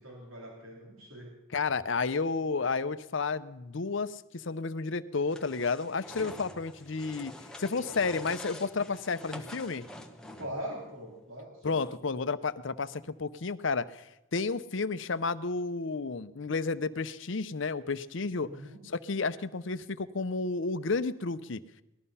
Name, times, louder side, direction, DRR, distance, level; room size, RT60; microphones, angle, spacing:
voice 1, 0.0-1.3 10.4-11.8 18.5-18.8, equal, 80° right, -1 dB, 3.1 m, -42 dB
voice 2, 1.5-7.3 7.6-9.9 11.6-14.0 14.3-18.5 18.8-21.6, left 4 dB, 65° left, 14 dB, 0.7 m, -31 dB
sound 1, 5.3-10.7, left 1 dB, 5° left, 1.0 m, -46 dB
19.0 x 13.0 x 5.6 m, 0.89 s
head